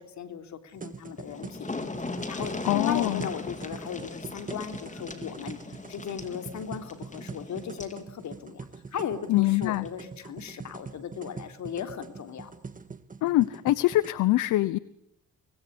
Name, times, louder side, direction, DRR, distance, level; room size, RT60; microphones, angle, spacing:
voice 1, 0.0-1.7 2.3-5.6 5.9-12.5, left 8 dB, 70° left, 9 dB, 3.5 m, -37 dB
sound 1, 0.7-14.1, right 4 dB, 25° right, 1.9 m, -43 dB
sound 2, 0.9-1.0 1.2-8.0 9.3-9.4 9.8-9.9, left 3 dB, 25° left, 3.9 m, -38 dB
voice 2, 2.6-3.3 9.3-9.8 13.2-14.8, left 16 dB, 85° left, 18 dB, 0.9 m, -24 dB
25.0 x 20.0 x 10.0 m, 0.83 s
cardioid pair, 90°, 30 cm